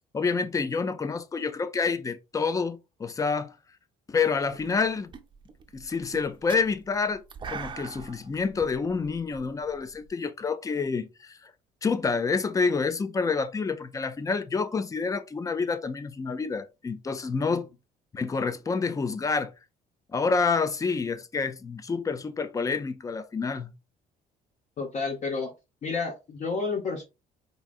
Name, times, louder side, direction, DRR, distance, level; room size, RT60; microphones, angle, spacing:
voice 1, 0.1-3.6 4.1-5.1 5.7-11.5 11.8-17.7 18.1-19.5 20.1-23.7, left 4 dB, 20° left, 0.4 m, -28 dB
sound 1, 4.5-4.8 5.1-10.1, right 6 dB, 30° right, 0.6 m, -42 dB
voice 2, 24.8-25.5 25.8-27.0, left 4 dB, 45° left, 0.9 m, -30 dB
4.6 x 2.6 x 2.4 m
cardioid pair, 110°, 17 cm